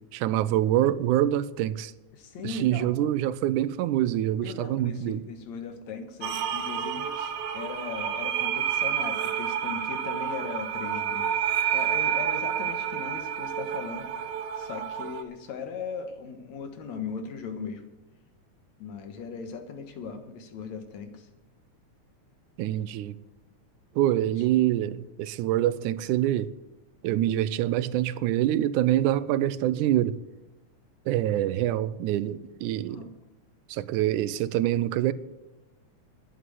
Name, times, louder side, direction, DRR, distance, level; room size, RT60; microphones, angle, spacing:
voice 1, 0.1-1.9 2.4-5.2 22.6-23.2 24.0-26.5 27.0-30.2 31.1-33.0 33.7-35.1, right 13 dB, 90° right, 2.1 m, -25 dB
voice 2, 2.1-3.0 4.4-14.1 14.6-17.8 18.8-21.3 24.4-24.5 32.8-33.1, left 5 dB, 65° left, 2.6 m, -38 dB
sound 1, 6.2-15.2, right 9 dB, 65° right, 1.6 m, -29 dB
11.5 x 9.5 x 7.8 m
omnidirectional pair, 3.5 m